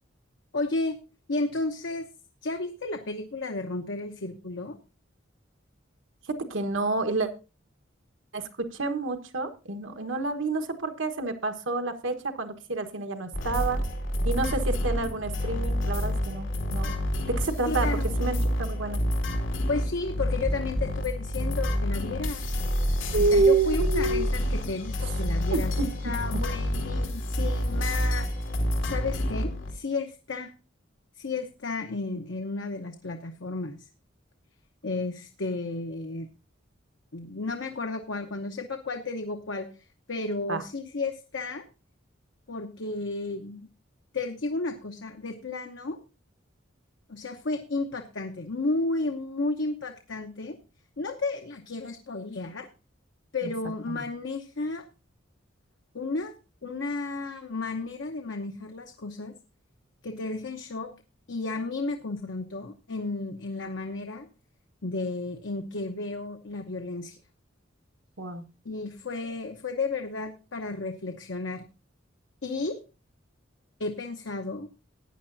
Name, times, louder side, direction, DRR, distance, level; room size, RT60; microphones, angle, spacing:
voice 1, 0.5-1.0 1.3-2.1 2.4-4.8 17.7-18.1 19.7-22.6 23.2-25.7 26.0-28.3 28.8-30.5 31.2-33.9 34.8-36.3 37.1-41.6 42.5-43.7 44.1-46.0 47.1-50.6 51.0-52.7 53.3-54.8 55.9-56.3 56.6-59.3 60.0-60.9 61.3-64.3 64.8-67.2 68.6-71.7 72.4-72.8 73.8-74.7, left 3 dB, 70° left, 5 dB, 0.9 m, -33 dB
voice 2, 6.4-7.3 8.3-13.8 14.2-16.9 17.3-17.9 18.2-19.0 23.1-24.2 25.5-25.9 26.3-26.4 40.5-40.6 53.4-53.5 53.9-54.0 68.2-68.5, right 3 dB, 80° right, 6 dB, 1.4 m, -28 dB
sound 1, 13.3-29.7, equal, 90° left, 2.4 m, -28 dB
15.5 x 9.8 x 2.7 m, 0.31 s
head